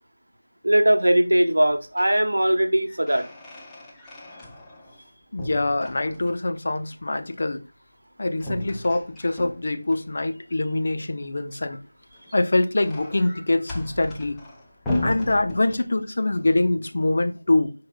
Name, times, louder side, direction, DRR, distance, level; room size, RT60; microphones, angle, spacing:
voice 1, 0.6-3.2, right 1 dB, 55° right, 1.0 m, -20 dB
sound 1, 1.6-2.2 2.6-5.1 5.4-6.6 8.4-10.0 12.0-16.2, left 1 dB, 5° left, 0.6 m, -35 dB
voice 2, 5.3-7.6 8.2-11.8 12.3-14.4 15.0-17.7, left 2 dB, 35° left, 0.8 m, -24 dB
10.0 x 4.8 x 2.2 m
figure-of-eight pair, 170°, 0 cm